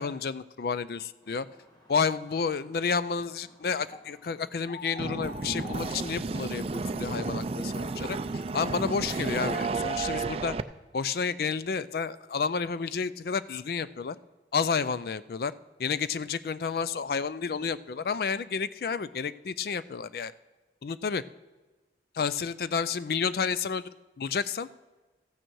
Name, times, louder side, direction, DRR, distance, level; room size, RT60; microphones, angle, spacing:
voice 1, 0.0-1.5 1.9-8.2 8.5-10.6 10.9-14.2 14.5-15.5 15.8-20.3 20.8-21.2 22.1-23.8 24.2-24.7, left 5 dB, 55° left, 16 dB, 0.4 m, -30 dB
sound 1, 1.2-6.8, left 4 dB, 20° left, 1.8 m, -49 dB
sound 2, 5.0-10.6, right 3 dB, 35° right, 0.4 m, -32 dB
14.0 x 9.0 x 4.6 m, 1.2 s
head